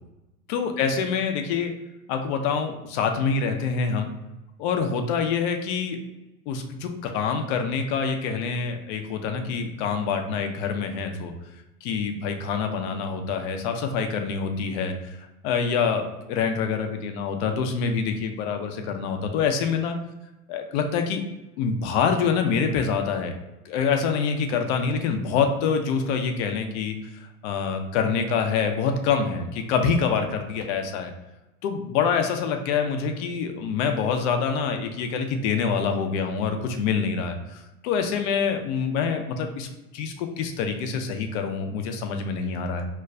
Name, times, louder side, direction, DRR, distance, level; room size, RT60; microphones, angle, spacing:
voice 1, 0.5-1.7 2.1-4.1 4.6-6.0 6.5-11.3 11.8-20.0 20.5-21.2 21.6-23.3 23.7-27.0 27.4-31.1 31.6-39.7 39.9-42.9, left 6 dB, 50° left, 5 dB, 0.5 m, -26 dB
2.2 x 2.2 x 3.7 m, 1.0 s
hypercardioid pair, 95°, 46 cm